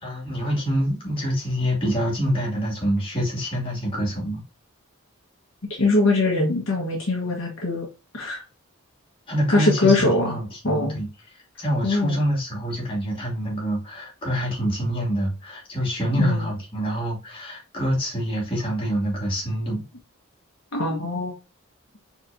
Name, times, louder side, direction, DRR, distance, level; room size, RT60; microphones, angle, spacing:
voice 1, 0.0-4.4 9.3-11.1 11.6-19.8, equal, 25° left, 2.4 m, -26 dB
voice 2, 5.7-7.9 8.1-8.4 9.5-10.4 10.6-11.0 11.8-12.2 16.2-16.4 20.7-21.3, left 2 dB, 65° left, 1.3 m, -22 dB
4.4 x 4.3 x 2.7 m
head